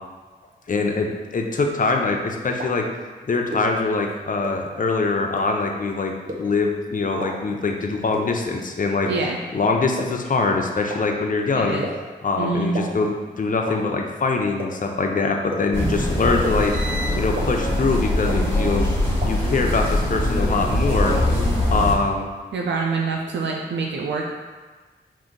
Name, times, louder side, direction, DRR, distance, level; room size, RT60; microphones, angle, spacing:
voice 1, 0.7-2.9 3.3-9.1 9.5-11.8 12.2-16.8 17.1-18.9 19.2-21.2 21.6-22.3, left 3 dB, 45° left, 2 dB, 0.6 m, -23 dB
sound 1, 2.6-2.7 3.5-3.6 4.4-4.5 5.4-5.5 6.3-6.4 7.2-7.3 8.1-8.2 9.1-9.2 10.0-10.1 10.9-11.0 11.8-11.9 12.7-12.8 13.7-13.8 14.6-14.7 15.5-15.6 16.4-16.5 17.4-17.5 18.3-18.4 19.2-19.3, right 1 dB, 50° right, 0.9 m, -30 dB
voice 2, 9.1-9.4 11.6-11.9 12.4-12.9 22.5-24.3, right 4 dB, 80° right, 0 dB, 0.4 m, -25 dB
sound 2, 15.7-22.0, left 1 dB, 15° left, 1.3 m, -22 dB
4.8 x 2.6 x 3.8 m, 1.3 s
cardioid pair, 55°, 18 cm